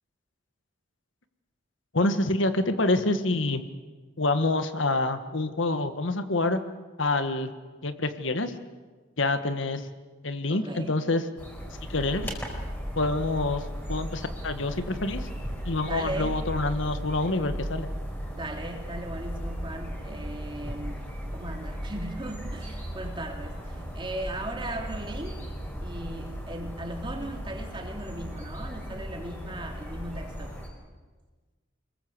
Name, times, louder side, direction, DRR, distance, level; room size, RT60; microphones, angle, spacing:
voice 1, 1.9-3.6 4.2-6.6 7.0-7.5 7.8-8.5 9.2-9.9 10.2-11.2 11.9-12.3 12.9-13.6 13.9-15.3 15.6-17.9, left 2 dB, 80° left, 9 dB, 1.6 m, -27 dB
voice 2, 10.5-11.0 15.9-16.4 18.3-25.5 25.8-30.6, right 1 dB, 25° right, 2 dB, 3.1 m, -38 dB
sound 1, 11.4-30.7, equal, 10° left, 4.5 m, -36 dB
25.5 x 21.5 x 7.9 m, 1.3 s
head